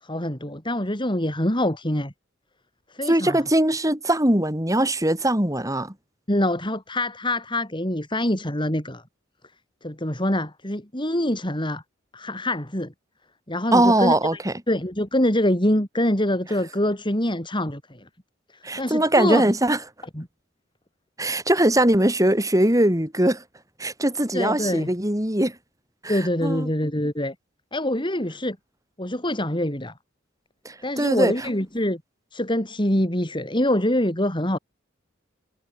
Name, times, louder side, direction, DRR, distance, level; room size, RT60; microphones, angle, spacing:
voice 1, 0.0-2.1 2.9-3.4 6.3-9.0 9.8-11.8 12.1-12.9 13.5-14.1 14.7-18.0 18.8-19.4 20.1-20.3 24.3-24.9 26.1-27.3 27.7-28.6 29.0-29.9 30.8-32.0 32.3-34.6, left 1 dB, 25° left, 6.9 m, -25 dB
voice 2, 3.1-5.9 13.7-14.5 18.6-19.8 21.2-23.4 23.8-25.6 26.0-26.7 30.7-31.5, right 1 dB, 15° right, 5.5 m, -21 dB
head